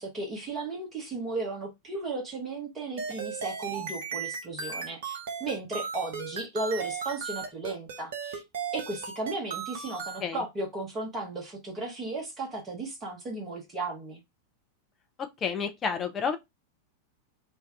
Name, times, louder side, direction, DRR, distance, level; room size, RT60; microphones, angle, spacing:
voice 1, 0.0-8.4 8.7-14.2, right 2 dB, 20° right, 1.0 m, -35 dB
sound 1, 3.0-10.2, right 6 dB, 55° right, 0.6 m, -36 dB
voice 2, 15.2-16.4, left 6 dB, 25° left, 0.5 m, -30 dB
2.6 x 2.3 x 3.3 m
figure-of-eight pair, 90°, 0 cm